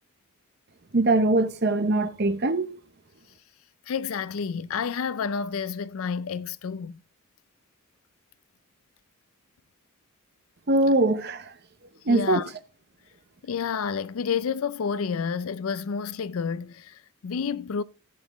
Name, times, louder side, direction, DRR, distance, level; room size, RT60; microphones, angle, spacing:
voice 1, 0.9-2.8 10.7-11.5 12.1-12.4, right 2 dB, 45° right, 0.8 m, -22 dB
voice 2, 3.9-7.0 12.1-12.5 13.4-17.8, left 6 dB, 70° left, 0.4 m, -30 dB
15.0 x 7.3 x 3.1 m
head